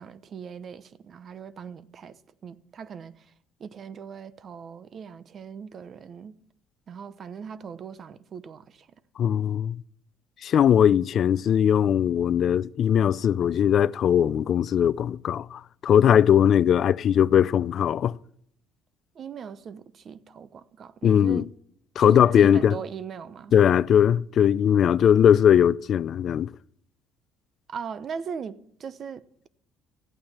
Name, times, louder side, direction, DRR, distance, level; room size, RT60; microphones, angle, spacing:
voice 1, 0.0-3.3 3.6-6.3 6.9-8.9 19.1-21.5 22.0-23.5 27.7-29.5, right 7 dB, 50° right, 0.9 m, -39 dB
voice 2, 9.2-9.8 10.4-18.1 21.0-21.4 22.0-22.8 23.5-26.5, left 9 dB, 55° left, 0.4 m, -20 dB
14.5 x 8.8 x 7.3 m
supercardioid pair, 75°, 0 cm